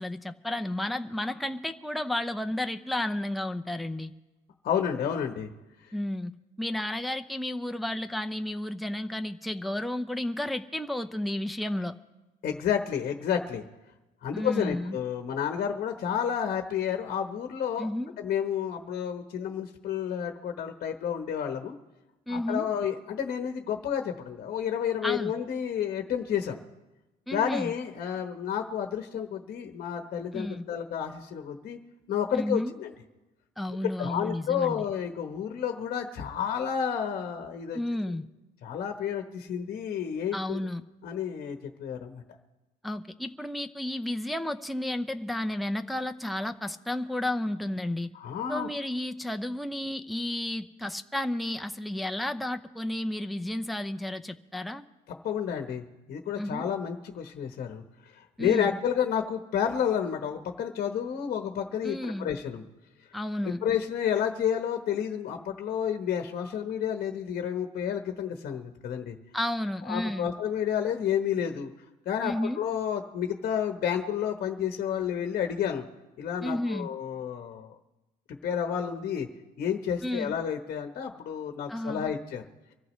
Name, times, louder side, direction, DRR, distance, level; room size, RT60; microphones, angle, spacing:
voice 1, 0.0-4.1 5.9-6.3 6.6-12.0 14.3-15.0 17.8-18.1 22.3-22.7 25.0-25.4 27.3-27.7 30.3-30.7 32.3-32.7 33.6-34.8 37.7-38.3 40.3-40.8 42.8-48.1 48.5-54.8 56.4-56.7 58.4-58.8 61.8-62.3 63.1-63.6 69.3-70.3 72.2-72.6 76.4-76.9 80.0-80.3 81.7-82.1, left 1 dB, ahead, 7 dB, 0.6 m, -32 dB
voice 2, 4.6-5.5 5.8-5.9 12.4-13.6 14.2-17.9 18.2-21.8 22.3-26.6 27.3-31.8 32.1-32.9 34.0-37.8 38.6-40.7 41.0-42.2 48.1-48.7 55.2-57.8 58.1-62.6 63.4-69.2 69.8-71.7 72.0-75.9 76.2-77.7 78.3-79.3 79.6-82.4, left 8 dB, 55° left, 5 dB, 1.0 m, -30 dB
24.5 x 14.5 x 3.1 m, 1.1 s
cardioid pair, 110°, 17 cm